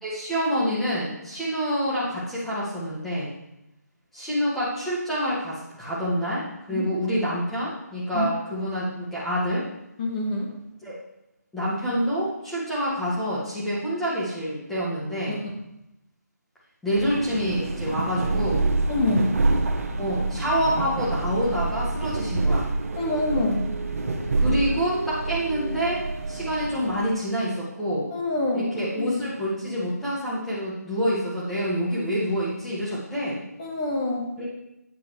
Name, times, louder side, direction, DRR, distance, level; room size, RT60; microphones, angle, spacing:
voice 1, 0.0-3.3 4.1-9.6 10.8-10.9 11.5-15.4 16.8-18.7 20.0-22.7 24.4-26.0 26.3-28.1 28.5-33.4 34.4-34.5, equal, 5° left, -10 dB, 1.7 m, -27 dB
voice 2, 10.0-10.5 15.3-15.5 18.9-19.3 23.0-23.7 28.1-28.7 29.0-29.2 33.6-34.3, left 2 dB, 25° left, -2 dB, 1.7 m, -26 dB
sound 1, 16.9-27.1, right 3 dB, 55° right, 1.1 m, -27 dB
10.0 x 8.7 x 3.2 m, 0.87 s
hypercardioid pair, 170°, 9 cm